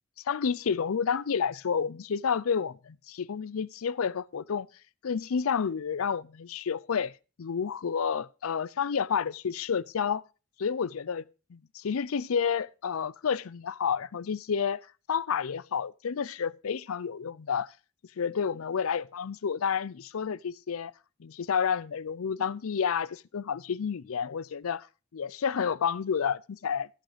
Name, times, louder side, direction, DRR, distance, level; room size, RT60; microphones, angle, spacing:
voice 1, 0.3-4.7 5.0-7.1 7.4-10.2 10.6-11.2 11.7-17.7 18.2-20.9 21.2-24.9 25.1-26.9, left 6 dB, 70° left, 0.5 m, -30 dB
14.0 x 6.3 x 5.0 m
head